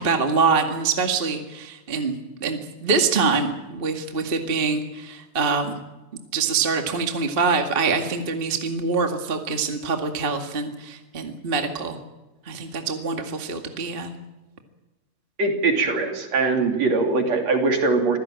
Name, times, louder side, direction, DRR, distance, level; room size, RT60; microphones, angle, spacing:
voice 1, 0.0-2.1 2.4-5.8 6.3-12.0 12.4-14.1, right 4 dB, 25° right, 5 dB, 1.4 m, -24 dB
voice 2, 15.4-18.2, right 3 dB, 50° right, 3 dB, 3.9 m, -21 dB
25.0 x 16.5 x 8.9 m, 1.1 s
omnidirectional pair, 4.1 m